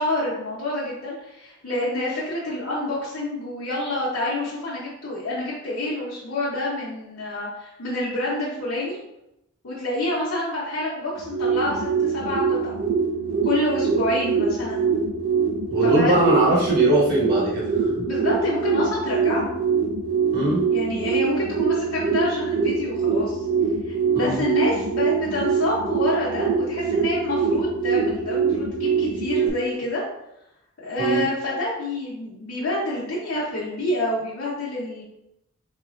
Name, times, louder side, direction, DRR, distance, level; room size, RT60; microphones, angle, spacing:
voice 1, 0.0-9.0 9.6-12.7 13.4-14.9 15.8-16.1 18.0-19.6 20.7-23.4 23.9-30.0 30.8-35.0, left 1 dB, 75° left, -7 dB, 0.9 m, -27 dB
sound 1, 11.1-29.5, right 5 dB, 85° right, 0.6 m, -24 dB
voice 2, 15.7-18.0 20.3-20.6 24.1-24.4 31.0-31.3, right 1 dB, 50° right, -6 dB, 1.4 m, -21 dB
4.1 x 3.0 x 2.5 m, 0.85 s
head